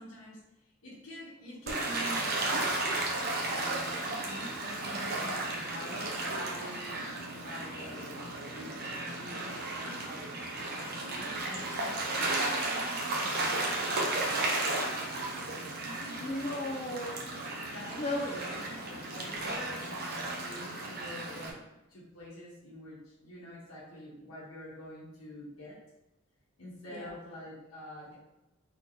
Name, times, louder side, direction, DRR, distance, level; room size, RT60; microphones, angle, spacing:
voice 1, 0.0-2.7 3.5-7.0 7.3-10.3 10.7-14.4 15.8-16.2 17.7-25.8 26.6-28.2, left 1 dB, 85° left, -7 dB, 1.4 m, -46 dB
Gull seagull / Waves surf, 1.7-21.5, right 2 dB, 50° right, 0.9 m, -34 dB
voice 2, 16.2-17.4 18.0-18.3 19.3-19.6 26.9-27.1, left 1 dB, 30° left, 1 dB, 0.8 m, -36 dB
4.0 x 3.1 x 4.1 m, 0.95 s
head